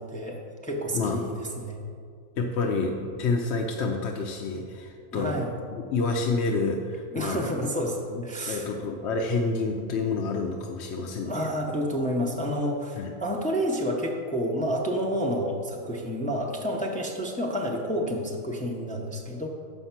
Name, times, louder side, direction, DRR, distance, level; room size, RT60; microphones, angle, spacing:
voice 1, 0.0-1.8 5.1-5.5 7.1-8.7 11.2-19.5, equal, 10° left, 0 dB, 0.4 m, -29 dB
voice 2, 2.4-5.4 5.7-7.4 8.1-11.5 13.0-13.1, left 3 dB, 60° left, 2 dB, 0.8 m, -28 dB
7.1 x 5.5 x 5.8 m, 2.2 s
omnidirectional pair, 1.5 m